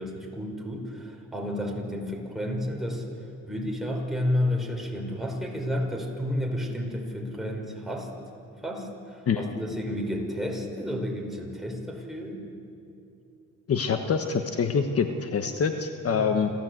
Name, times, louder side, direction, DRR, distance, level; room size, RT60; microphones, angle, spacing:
voice 1, 0.0-3.1 3.5-8.1 8.6-12.4 16.1-16.4, left 1 dB, ahead, 0 dB, 4.9 m, -31 dB
voice 2, 13.7-16.5, left 6 dB, 50° left, 6 dB, 1.3 m, -25 dB
27.5 x 15.0 x 8.0 m, 2.7 s
cardioid pair, 90°, 30 cm